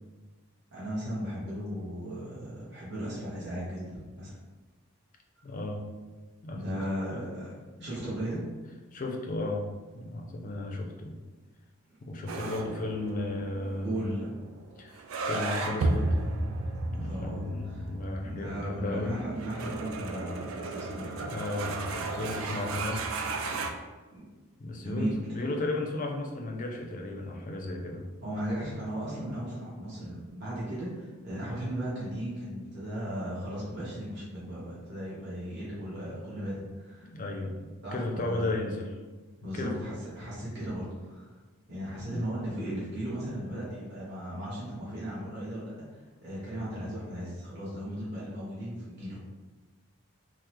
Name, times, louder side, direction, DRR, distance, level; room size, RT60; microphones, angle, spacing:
voice 1, 0.7-4.4 6.5-7.5 7.8-8.4 13.8-14.3 16.9-17.8 18.2-21.1 24.1-24.3 24.8-25.5 28.2-37.1 37.8-38.5 39.4-41.3 41.7-49.2, equal, 50° right, -9 dB, 1.0 m, -36 dB
voice 2, 5.4-5.8 6.4-7.2 7.8-7.9 8.9-9.7 9.9-11.2 12.0-14.1 14.8-16.2 16.8-19.2 21.2-23.1 24.6-28.1 37.0-38.9 39.5-39.8 42.1-42.2, left 2 dB, 40° left, 2 dB, 0.4 m, -34 dB
sound 1, 12.3-23.7, right 2 dB, 65° right, 0.3 m, -34 dB
3.5 x 2.0 x 2.9 m, 1.3 s
head